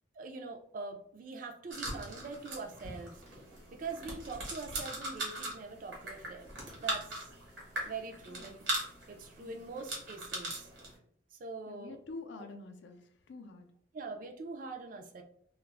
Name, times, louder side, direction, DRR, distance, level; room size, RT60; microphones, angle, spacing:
voice 1, 0.1-3.2 3.7-6.5 6.8-7.3 7.9-8.8 9.1-10.7 11.3-12.0 13.9-15.2, right 4 dB, 45° right, 4 dB, 0.3 m, -43 dB
sound 1, 1.7-11.0, right 1 dB, 70° right, 1.0 m, -40 dB
voice 2, 11.7-13.7, left 3 dB, 70° left, 6 dB, 0.4 m, -47 dB
2.3 x 2.0 x 3.2 m, 0.65 s
head